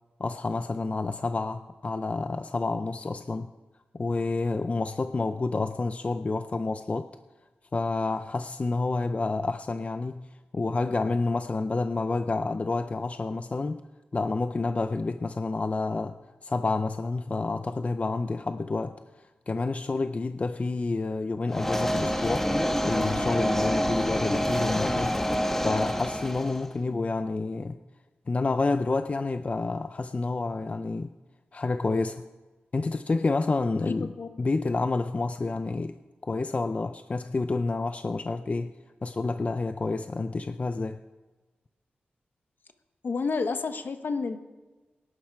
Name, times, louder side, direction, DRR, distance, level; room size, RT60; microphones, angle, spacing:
voice 1, 0.2-3.5 3.9-7.1 7.7-10.3 10.5-13.8 14.1-19.0 19.5-22.5 22.8-25.2 25.6-27.8 28.3-31.1 31.5-32.2 32.7-36.0 36.2-38.7 39.0-41.0, left 3 dB, 40° left, 10 dB, 0.5 m, -29 dB
sound 1, 21.5-26.7, equal, 10° left, 1.1 m, -27 dB
voice 2, 33.8-34.3 43.0-44.4, left 4 dB, 65° left, 8 dB, 1.2 m, -30 dB
18.5 x 11.0 x 4.7 m, 1.2 s
cardioid pair, 70°, 4 cm